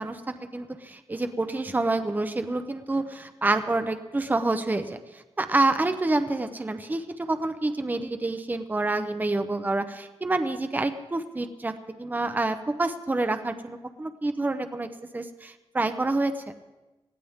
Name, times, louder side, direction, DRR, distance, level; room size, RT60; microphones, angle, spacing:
voice 1, 0.0-11.7 12.0-14.9 15.1-16.5, right 2 dB, 15° right, 8 dB, 0.7 m, -28 dB
19.5 x 15.0 x 3.6 m, 1.1 s
wide cardioid pair, 115°, 10 cm